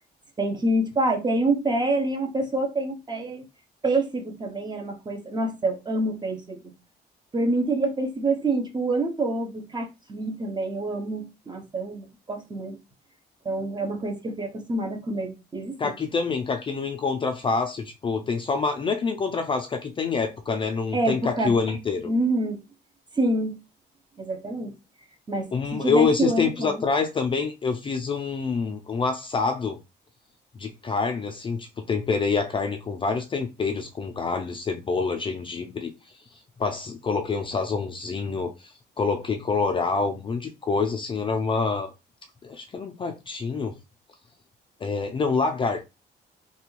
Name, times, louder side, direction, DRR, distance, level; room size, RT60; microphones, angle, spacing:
voice 1, 0.4-3.4 3.8-6.7 7.3-12.8 13.4-15.9 20.9-21.5 22.0-22.6 23.1-23.6 24.2-24.7 25.3-26.8, right 2 dB, 25° right, 0.6 m, -27 dB
voice 2, 15.8-22.1 25.5-29.8 30.5-35.9 36.6-41.9 42.4-43.8 44.8-45.8, left 4 dB, 30° left, 0.4 m, -26 dB
3.2 x 2.2 x 3.0 m
cardioid pair, 125°, 18 cm